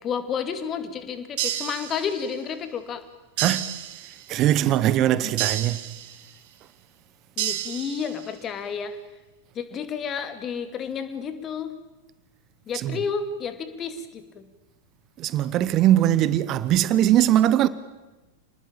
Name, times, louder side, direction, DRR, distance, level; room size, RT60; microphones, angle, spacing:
voice 1, 0.0-3.0 7.4-9.0 9.5-11.7 12.7-14.5, left 6 dB, 25° left, 2.6 m, -31 dB
sound 1, 1.4-2.4 3.4-4.4 5.4-6.4 7.4-8.4, right 13 dB, 50° right, 1.8 m, -31 dB
voice 2, 3.4-3.7 4.3-5.8 12.7-13.0 15.2-17.7, right 12 dB, 35° right, 1.0 m, -21 dB
27.5 x 20.0 x 8.9 m
figure-of-eight pair, 90°, 0 cm